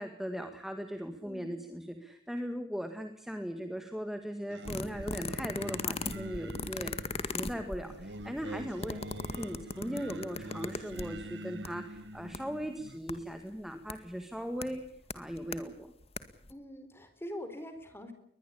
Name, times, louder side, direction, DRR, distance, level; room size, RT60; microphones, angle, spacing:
voice 1, 0.0-14.9 15.1-15.9, equal, ahead, 6 dB, 1.9 m, -39 dB
voice 2, 1.2-1.5 16.5-18.1, left 1 dB, 15° left, 9 dB, 4.3 m, -43 dB
Singing, 4.5-13.0, right 1 dB, 85° right, 1.8 m, -46 dB
sound 1, 4.7-11.2 11.6-11.7 12.0-12.4 13.1-13.2 13.9-14.0 14.6-14.7 15.1-15.6 16.0-16.2 16.4-16.5, left 3 dB, 35° left, 1.9 m, -37 dB
22.5 x 20.5 x 8.6 m, 0.64 s
head